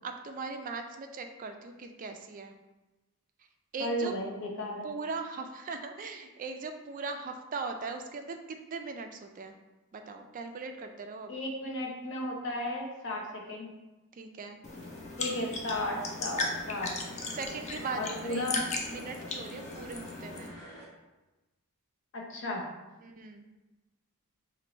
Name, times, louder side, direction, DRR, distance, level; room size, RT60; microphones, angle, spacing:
voice 1, 0.0-2.5 3.7-4.1 4.8-9.6 9.9-11.3 14.1-14.6 17.3-20.5 23.0-23.5, right 4 dB, 35° right, 6 dB, 0.3 m, -39 dB
voice 2, 3.8-4.9 11.3-13.7 15.2-16.9 17.9-18.6 22.1-22.6, left 1 dB, 55° left, 0 dB, 0.7 m, -34 dB
sound 1, 14.6-20.5, left 3 dB, 30° left, 0.4 m, -37 dB
sound 2, 14.7-20.8, equal, 80° left, 1.3 m, -50 dB
4.4 x 2.5 x 3.0 m, 1.1 s
head